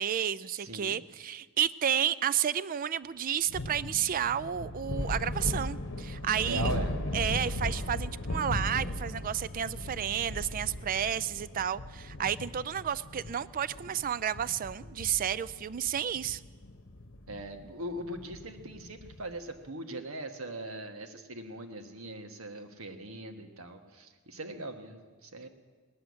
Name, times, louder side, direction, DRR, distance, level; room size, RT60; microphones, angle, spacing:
voice 1, 0.0-6.7 7.1-16.4, right 9 dB, 40° right, 18 dB, 0.4 m, -31 dB
voice 2, 0.6-1.0 6.5-6.9 17.3-25.5, right 1 dB, 80° right, 6 dB, 1.4 m, -40 dB
sound 1, 3.5-19.3, left 1 dB, 60° left, 1.0 m, -37 dB
19.0 x 7.9 x 9.6 m, 1.5 s
head